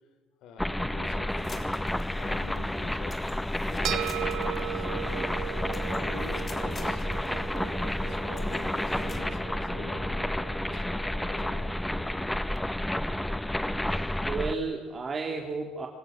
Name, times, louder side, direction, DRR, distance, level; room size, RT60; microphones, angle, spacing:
voice 1, 0.4-3.3 3.7-4.2 4.7-10.3 10.7-11.6, left 5 dB, 70° left, 9 dB, 4.0 m, -47 dB
sound 1, 0.6-14.5, left 1 dB, 5° left, 0.9 m, -30 dB
sound 2, 1.4-9.2, left 4 dB, 30° left, 3.7 m, -49 dB
sound 3, 3.8-12.4, right 14 dB, 70° right, 1.3 m, -39 dB
voice 2, 13.8-15.9, right 4 dB, 30° right, 2 dB, 3.0 m, -33 dB
27.0 x 18.5 x 7.7 m, 1.5 s
cardioid pair, 115°, 0 cm